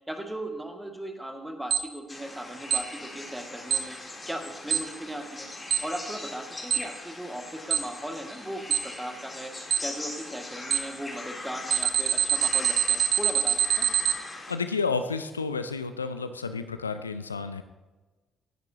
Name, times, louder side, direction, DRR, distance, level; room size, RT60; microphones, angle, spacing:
voice 1, 0.1-4.0 4.3-5.5 5.8-9.5 9.8-13.9, right 1 dB, 5° right, 3 dB, 2.0 m, -38 dB
Alarm, 1.7-1.8 2.7-2.8 3.7-3.8 4.7-4.8 5.7-5.8 6.7-6.8 7.7-7.8 8.7-8.8 9.7-9.8 10.7-10.8 11.7-14.1, right 9 dB, 50° right, 1.0 m, -23 dB
sound 1, 2.1-14.5, left 2 dB, 25° left, 3.3 m, -41 dB
voice 2, 14.5-17.6, left 4 dB, 85° left, 11 dB, 0.4 m, -31 dB
17.5 x 10.5 x 2.9 m, 1.2 s
figure-of-eight pair, 45°, 0 cm